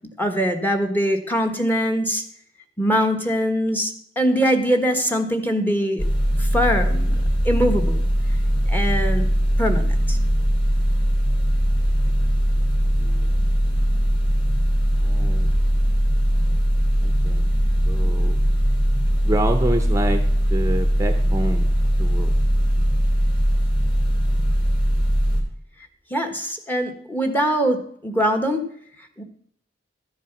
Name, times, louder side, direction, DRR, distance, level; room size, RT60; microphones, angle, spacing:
voice 1, 0.2-2.2 2.8-6.0 6.4-8.0 8.7-9.3 9.6-10.2 26.1-28.6 29.2-29.3, equal, 10° left, 6 dB, 1.4 m, -22 dB
sound 1, 6.0-25.4, equal, 30° left, 3.6 m, -20 dB
voice 2, 12.9-13.4 15.0-15.5 17.0-17.5 17.8-18.4 19.2-20.2 20.5-21.7 22.0-22.4, right 1 dB, 20° right, 6 dB, 0.8 m, -27 dB
13.0 x 7.4 x 6.0 m, 0.64 s
head